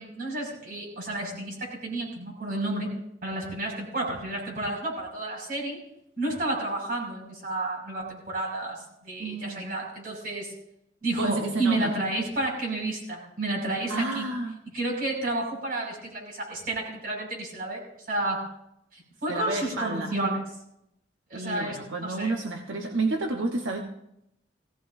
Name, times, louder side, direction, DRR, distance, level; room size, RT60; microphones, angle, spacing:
voice 1, 0.0-2.9 3.2-5.8 6.2-10.5 11.0-14.2 14.7-17.8 18.1-18.4 18.9-20.4 21.3-22.3, right 2 dB, 50° right, 0 dB, 6.0 m, -31 dB
voice 2, 9.2-9.7 11.1-11.9 13.9-14.6 19.3-20.1 21.3-23.8, right 2 dB, 85° right, 2 dB, 1.2 m, -30 dB
19.5 x 17.0 x 2.7 m, 0.80 s
head